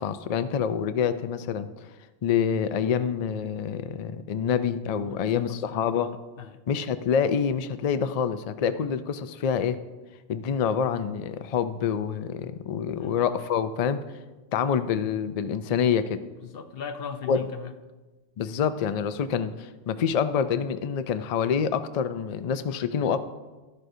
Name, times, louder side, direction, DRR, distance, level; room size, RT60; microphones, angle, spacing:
voice 1, 0.0-1.7 2.2-6.2 6.7-9.8 10.3-14.0 14.5-16.2 17.3-17.4 18.4-23.2, left 7 dB, 75° left, 11 dB, 0.3 m, -26 dB
voice 2, 5.1-5.8 6.4-6.6 13.0-13.2 16.4-17.7, left 7 dB, 60° left, 8 dB, 0.8 m, -38 dB
12.5 x 11.0 x 2.7 m, 1.2 s
omnidirectional pair, 1.2 m